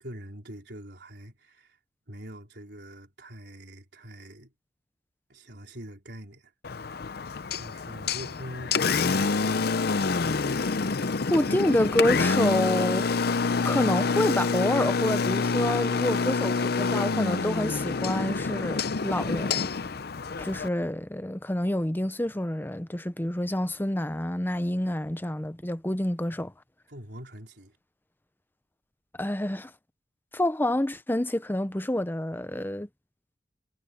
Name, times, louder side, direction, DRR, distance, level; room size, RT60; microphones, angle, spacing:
voice 1, 0.0-1.8 2.1-4.5 5.3-6.5 6.8-7.0 7.5-10.1 26.9-27.8, equal, 65° right, 4.6 m, -44 dB
Engine, 6.6-20.7, left 4 dB, 60° left, 0.7 m, -27 dB
voice 2, 11.3-13.3 13.6-19.7 20.4-26.5 29.2-29.7 30.3-32.9, left 1 dB, 10° left, 0.8 m, -28 dB
head